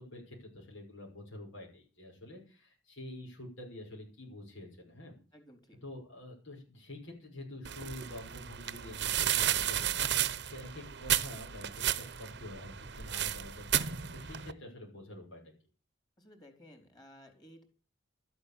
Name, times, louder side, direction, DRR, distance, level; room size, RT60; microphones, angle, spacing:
voice 1, 0.0-5.2 5.8-15.4, left 1 dB, 90° left, -1 dB, 5.8 m, -47 dB
voice 2, 5.3-5.8 16.2-17.6, equal, 20° left, 6 dB, 3.9 m, -56 dB
sound 1, 7.6-14.5, right 11 dB, 60° right, 0.8 m, -33 dB
13.0 x 8.6 x 8.4 m, 0.38 s
head